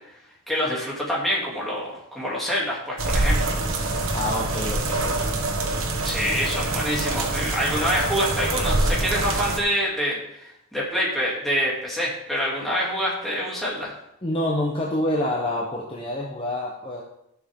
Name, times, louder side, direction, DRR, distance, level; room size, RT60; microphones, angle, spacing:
voice 1, 0.5-3.4 6.0-13.9, equal, ahead, -6 dB, 2.7 m, -26 dB
sound 1, 3.0-9.6, right 2 dB, 75° right, 1.3 m, -25 dB
voice 2, 4.1-5.4 14.2-17.0, left 1 dB, 25° left, -2 dB, 1.0 m, -27 dB
13.0 x 6.3 x 3.7 m, 0.80 s
head